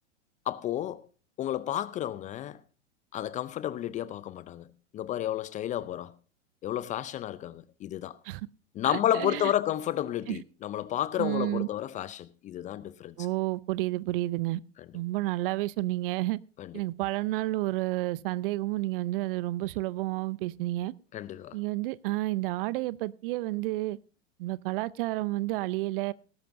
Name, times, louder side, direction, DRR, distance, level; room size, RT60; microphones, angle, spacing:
voice 1, 0.5-1.1 1.4-2.6 3.1-4.7 4.9-6.1 6.6-8.2 8.8-13.1 16.6-16.7 21.1-21.6, left 12 dB, 20° left, 0.5 m, -31 dB
voice 2, 8.8-9.5 10.3-10.4 11.2-11.7 13.2-14.6 14.9-16.4 16.7-20.9 21.5-24.0 24.4-26.1, right 18 dB, 50° right, 0.6 m, -30 dB
19.0 x 12.0 x 2.6 m
hypercardioid pair, 105°, 36 cm